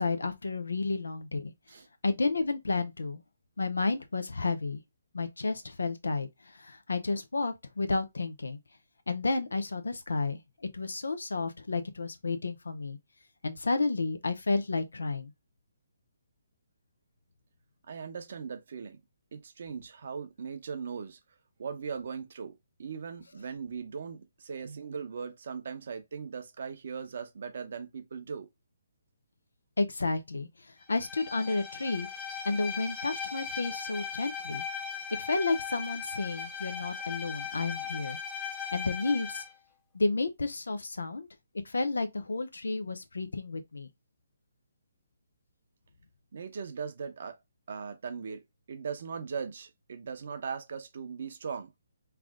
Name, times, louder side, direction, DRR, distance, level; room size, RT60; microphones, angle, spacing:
voice 1, 0.0-1.5 2.0-3.2 3.6-4.8 5.1-8.6 9.1-10.4 10.7-13.0 13.4-15.3 29.8-32.1 32.4-34.6 35.2-38.2 38.7-39.4 39.9-41.3 41.6-43.9, left 3 dB, 85° left, 0.7 m, -31 dB
voice 2, 17.8-19.0 19.3-21.2 21.6-28.5 46.3-47.4 47.7-48.4 48.7-51.7, right 6 dB, 60° right, 0.9 m, -39 dB
Bowed string instrument, 30.9-39.5, left 6 dB, 10° left, 0.9 m, -38 dB
3.4 x 2.5 x 3.6 m
hypercardioid pair, 145°, 0 cm